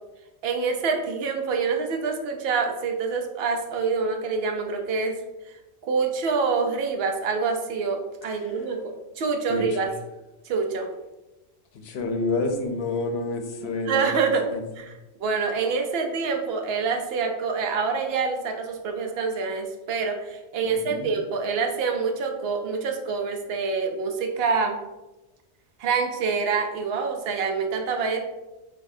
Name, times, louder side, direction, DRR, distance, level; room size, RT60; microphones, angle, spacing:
voice 1, 0.4-5.1 5.5-5.6 5.8-8.8 9.2-9.9 10.5-10.9 13.6-14.4 14.8-14.9 15.2-24.8 25.8-28.2, right 5 dB, 65° right, 3 dB, 0.8 m, -26 dB
voice 2, 9.5-9.9 11.7-14.1 14.5-14.6 20.6-21.1, left 3 dB, 65° left, 5 dB, 0.9 m, -29 dB
5.9 x 2.7 x 2.6 m, 1.0 s
omnidirectional pair, 1.2 m